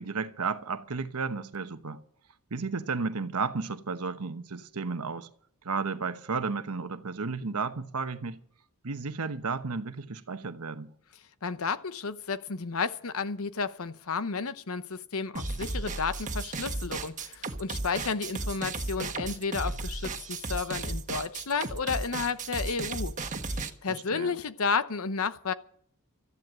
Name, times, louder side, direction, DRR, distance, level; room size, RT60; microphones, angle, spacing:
voice 1, 0.0-2.0 2.5-5.3 5.6-8.4 8.8-10.9 23.9-24.3, right 4 dB, 85° right, 1.0 m, -33 dB
voice 2, 11.4-23.1 23.5-25.5, left 5 dB, 65° left, 0.9 m, -32 dB
sound 1, 15.3-23.7, right 3 dB, 35° right, 1.4 m, -34 dB
14.0 x 10.5 x 7.7 m
head